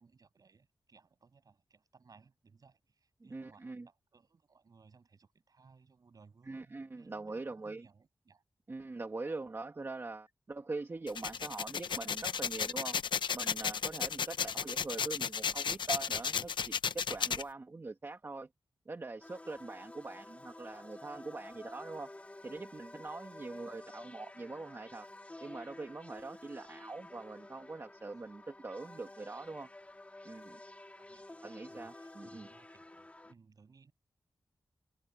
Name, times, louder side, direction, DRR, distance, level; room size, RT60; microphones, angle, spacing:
voice 1, 0.0-8.4 14.3-14.5 23.6-24.0 31.0-33.9, right 5 dB, 55° right, 7.3 m, -63 dB
voice 2, 3.3-3.9 6.5-7.8 8.7-13.0 13.3-18.5 18.9-22.1 22.4-25.1 25.4-29.7 30.3-30.6 31.4-32.5, right 3 dB, 30° right, 1.7 m, -43 dB
sound 1, 11.1-17.4, left 7 dB, 90° left, 0.8 m, -34 dB
sound 2, 19.2-33.3, left 2 dB, 15° left, 2.4 m, -51 dB
wide cardioid pair, 145°, 8 cm